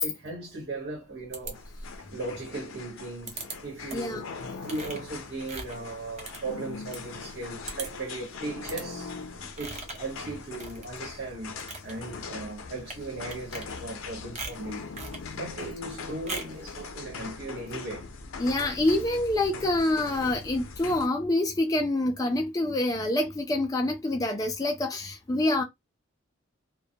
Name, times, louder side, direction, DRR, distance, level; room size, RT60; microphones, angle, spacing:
voice 1, 0.0-1.6 2.1-4.2 4.6-9.1 9.6-11.5 11.8-14.9 15.3-18.1, right 2 dB, 60° right, 1.1 m, -37 dB
sound 1, 1.3-2.0 3.3-3.6 3.9-4.2 4.6-7.0 7.3-7.4 7.6-8.1 8.6-8.9 9.6-10.1 10.5-11.1 11.4-11.9 12.8-13.0 13.3-14.0 14.3-15.3 16.3-16.6, right 3 dB, 35° right, 0.5 m, -40 dB
sound 2, 1.5-21.1, left 4 dB, 90° left, 0.5 m, -41 dB
voice 2, 3.9-4.2 18.4-25.6, left 1 dB, 20° left, 0.4 m, -26 dB
2.2 x 2.1 x 2.7 m
head